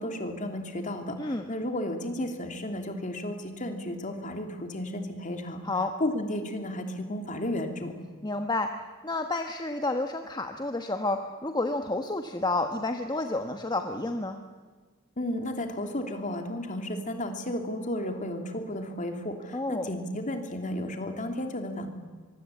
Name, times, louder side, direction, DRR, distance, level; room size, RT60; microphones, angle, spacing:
voice 1, 0.0-5.6 6.0-7.9 15.2-21.9, left 1 dB, 35° left, 5 dB, 3.1 m, -33 dB
voice 2, 8.2-8.7 9.0-14.4 19.5-19.9, left 2 dB, 20° left, 5 dB, 1.3 m, -30 dB
24.0 x 23.5 x 8.5 m, 1.5 s
head